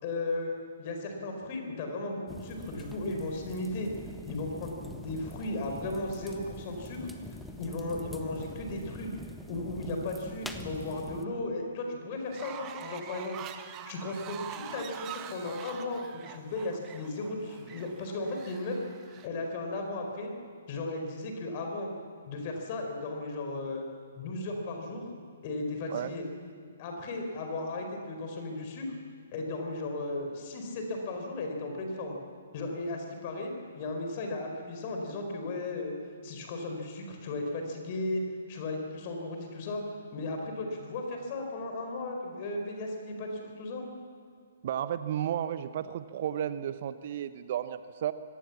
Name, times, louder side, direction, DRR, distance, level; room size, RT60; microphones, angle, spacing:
voice 1, 0.0-3.9 4.2-7.1 7.6-9.1 9.5-13.4 13.7-18.8 19.0-20.3 20.7-21.9 22.2-23.8 24.2-25.1 25.4-26.2 26.8-28.9 29.3-32.2 32.5-35.9 36.2-38.2 38.5-39.8 40.1-43.8, left 2 dB, 40° left, 3 dB, 4.6 m, -35 dB
sound 1, 2.3-11.3, equal, ahead, 1.3 m, -44 dB
Fowl, 12.2-19.3, right 9 dB, 25° right, 1.5 m, -44 dB
voice 2, 44.6-48.1, right 10 dB, 50° right, 13 dB, 0.8 m, -33 dB
24.0 x 18.5 x 7.3 m, 2.2 s
figure-of-eight pair, 125°, 0 cm